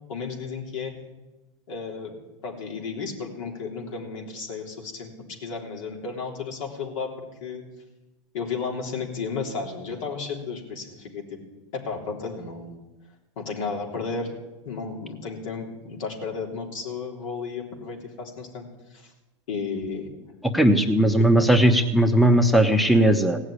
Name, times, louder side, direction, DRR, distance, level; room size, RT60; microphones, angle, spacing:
voice 1, 0.1-0.9 1.7-5.1 5.4-7.6 8.3-11.4 11.7-12.7 13.4-14.3 14.6-18.6 18.9-19.1 19.5-20.1 21.4-21.5, left 5 dB, 75° left, 1 dB, 3.5 m, -33 dB
voice 2, 20.5-23.4, right 1 dB, ahead, 8 dB, 0.8 m, -18 dB
16.5 x 6.6 x 9.8 m, 1.1 s
supercardioid pair, 125°, 17 cm